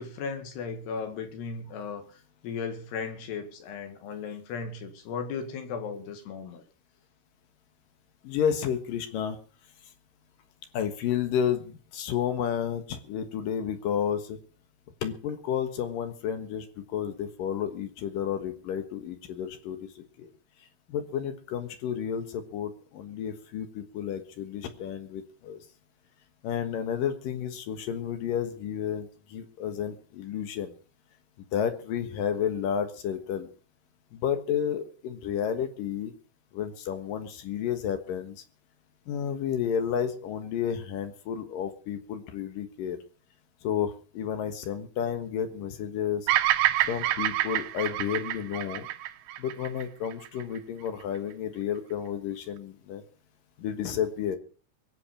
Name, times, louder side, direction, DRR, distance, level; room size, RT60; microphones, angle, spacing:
voice 1, 0.0-6.6, left 5 dB, 85° left, 6 dB, 4.0 m, -36 dB
voice 2, 8.2-9.4 10.7-14.4 15.0-20.3 20.9-25.6 26.4-30.7 31.5-33.5 34.1-36.1 36.5-38.4 39.1-43.0 43.6-46.3 46.8-48.9 49.4-53.0 53.6-54.4, left 8 dB, 65° left, 8 dB, 2.9 m, -31 dB
Bird vocalization bird call bird song, 46.3-50.6, right 14 dB, 75° right, 2.1 m, -27 dB
22.5 x 7.8 x 5.8 m, 0.40 s
omnidirectional pair, 4.6 m